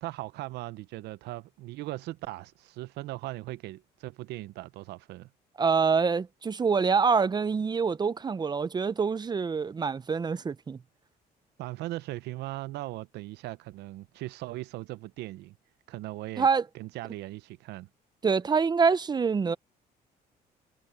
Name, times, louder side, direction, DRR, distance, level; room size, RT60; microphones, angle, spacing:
voice 1, 0.0-5.3 11.6-15.6 15.9-16.5 16.7-17.9, right 17 dB, 80° right, 0.7 m, -39 dB
voice 2, 5.6-10.8 16.4-16.6 18.2-19.6, right 5 dB, 25° right, 0.6 m, -25 dB
cardioid pair, 110°, 17 cm